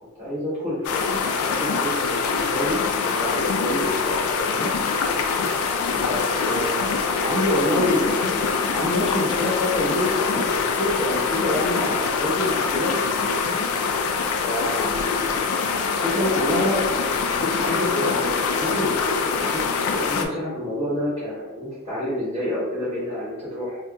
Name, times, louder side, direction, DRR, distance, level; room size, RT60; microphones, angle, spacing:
voice 1, 0.2-4.7 5.9-12.9 14.4-15.3 16.0-19.6 19.8-23.8, left 1 dB, 25° right, -10 dB, 1.1 m, -27 dB
sound 1, 0.8-20.3, left 5 dB, 70° left, 0.3 m, -24 dB
2.7 x 2.5 x 2.3 m, 1.1 s
head